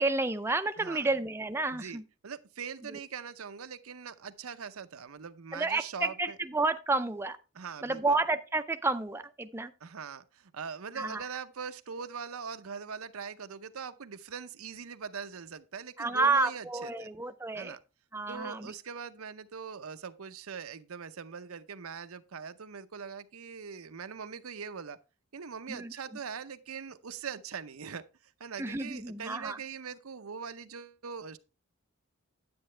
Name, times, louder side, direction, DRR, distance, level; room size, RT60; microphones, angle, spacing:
voice 1, 0.0-2.0 2.9-3.0 5.5-7.4 7.8-9.7 11.0-11.2 16.0-17.8 18.1-18.7 25.7-25.9 28.6-29.6, right 3 dB, 10° right, 0.4 m, -30 dB
voice 2, 0.8-1.1 1.7-6.4 7.5-8.2 9.8-17.1 17.5-17.8 18.3-25.0 25.3-31.4, right 6 dB, 90° right, 0.7 m, -42 dB
9.6 x 8.7 x 3.2 m
head